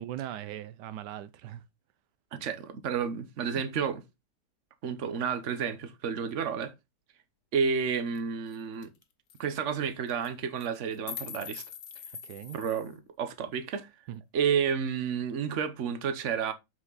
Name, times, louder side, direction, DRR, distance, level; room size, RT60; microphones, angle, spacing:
voice 1, 0.0-1.6 12.2-12.6 14.1-14.2, right 12 dB, 85° right, 1.3 m, -39 dB
voice 2, 2.3-4.0 4.8-6.7 7.5-8.9 9.4-11.6 12.5-13.9 14.3-16.5, right 6 dB, 50° right, 1.3 m, -31 dB
sound 1, 8.2-8.3 8.5-8.6 8.8-9.0 9.3-9.4 10.1-10.3 10.6-12.9, left 8 dB, 80° left, 1.7 m, -42 dB
7.4 x 6.1 x 4.0 m
omnidirectional pair, 1.8 m